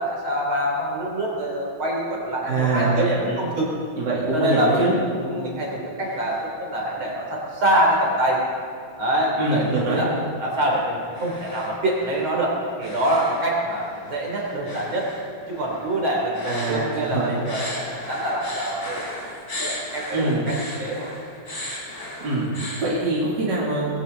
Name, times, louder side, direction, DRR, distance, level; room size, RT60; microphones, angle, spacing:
voice 1, 0.0-3.7 4.3-8.4 9.0-10.1 10.4-15.1 15.5-19.1 19.5-20.5 20.8-21.1, right 1 dB, 70° right, -2 dB, 4.3 m, -25 dB
voice 2, 2.4-3.4 4.0-5.0 9.4-10.0 16.5-17.4 20.1-20.5 22.2-23.9, right 2 dB, 55° right, -6 dB, 3.4 m, -24 dB
sound 1, 6.0-6.5 6.9-7.3 7.8-22.8, left 1 dB, 35° left, 3.8 m, -38 dB
21.0 x 16.0 x 4.0 m, 2.4 s
omnidirectional pair, 2.3 m